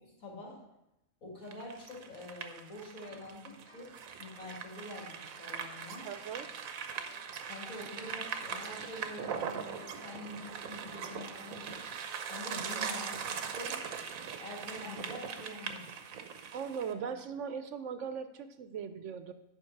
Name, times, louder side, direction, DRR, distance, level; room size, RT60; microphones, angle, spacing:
voice 1, 0.0-0.6 1.2-6.1 7.4-11.9 12.3-13.8 14.4-15.8, left 2 dB, 90° left, -4 dB, 2.8 m, -46 dB
sound 1, 1.5-16.9, right 7 dB, 90° right, 1.1 m, -41 dB
sound 2, 3.0-3.2 3.5-6.1 6.3-6.7 7.0-7.4 7.7-8.5 9.0-9.3 9.6-13.3, left 2 dB, 45° left, 1.9 m, -61 dB
voice 2, 6.0-6.5 12.5-12.9 16.5-19.3, right 7 dB, 70° right, 10 dB, 0.9 m, -39 dB
9.9 x 5.2 x 4.5 m, 0.90 s
omnidirectional pair, 1.4 m